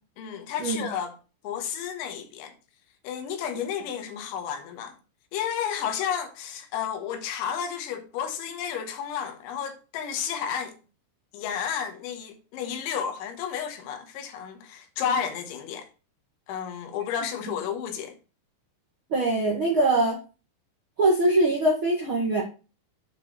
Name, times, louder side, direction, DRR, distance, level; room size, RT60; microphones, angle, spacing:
voice 1, 0.2-1.2 1.4-2.5 3.0-5.0 5.3-10.8 11.3-15.9 16.5-18.2, left 8 dB, 85° left, 3.7 m, -32 dB
voice 2, 19.1-20.2 21.0-22.4, right 2 dB, 60° right, 1.3 m, -22 dB
8.3 x 5.0 x 6.4 m
omnidirectional pair, 5.4 m